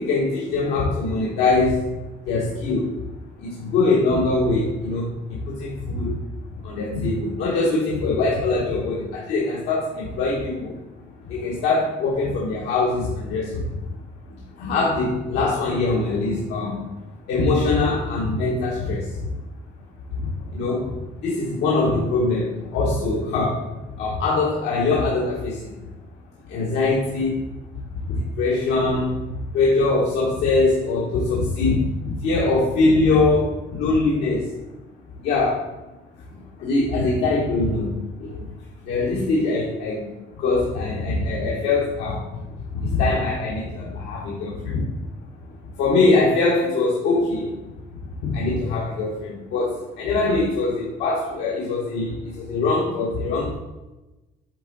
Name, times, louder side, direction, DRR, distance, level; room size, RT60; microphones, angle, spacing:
voice 1, 0.0-1.9 2.3-3.0 3.4-6.2 6.5-10.8 11.2-13.9 14.6-19.3 20.1-25.8 26.4-27.4 27.9-34.6 35.2-35.7 36.4-38.4 38.8-40.1 40.4-44.9 45.5-47.6 48.2-53.6, left 3 dB, 85° left, -3 dB, 1.1 m, -23 dB
8.1 x 3.6 x 3.9 m, 1.1 s
cardioid pair, 110°, 17 cm